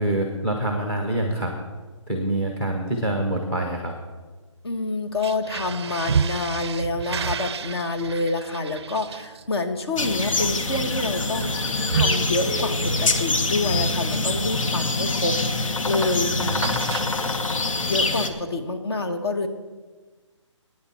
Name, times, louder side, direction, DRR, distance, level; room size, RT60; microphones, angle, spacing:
voice 1, 0.0-1.5 2.1-3.9 16.3-16.8, right 1 dB, 5° left, 2 dB, 0.6 m, -26 dB
voice 2, 4.6-11.6 11.9-16.6 17.9-19.5, left 2 dB, 50° left, 7 dB, 1.2 m, -27 dB
sound 1, 5.1-15.0 15.4-15.7 15.9-17.5, right 6 dB, 55° right, 0.4 m, -31 dB
sound 2, 10.0-18.3, left 3 dB, 85° left, 1.2 m, -25 dB
15.5 x 9.5 x 4.2 m, 1.3 s
hypercardioid pair, 175°, 16 cm